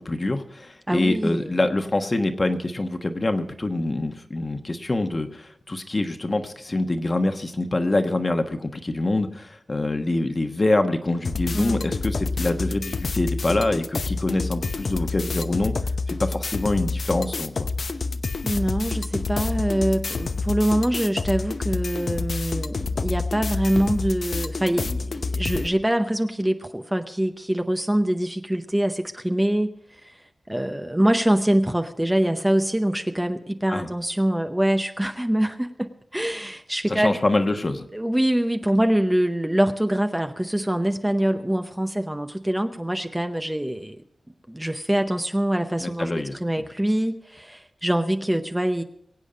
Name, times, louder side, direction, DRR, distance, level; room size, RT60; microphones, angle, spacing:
voice 1, 0.0-15.7 16.1-17.7 33.7-33.9 36.9-37.9 45.8-46.3, left 2 dB, 35° left, 6 dB, 1.2 m, -25 dB
voice 2, 0.9-1.6 11.5-11.8 18.4-29.7 30.0-30.2 30.5-37.2 37.9-44.0 44.5-48.8, right 1 dB, 10° right, 7 dB, 0.7 m, -24 dB
sound 1, 11.2-25.7, left 3 dB, 65° left, 0.8 m, -28 dB
22.5 x 8.4 x 5.2 m, 0.73 s
wide cardioid pair, 95°, 0 cm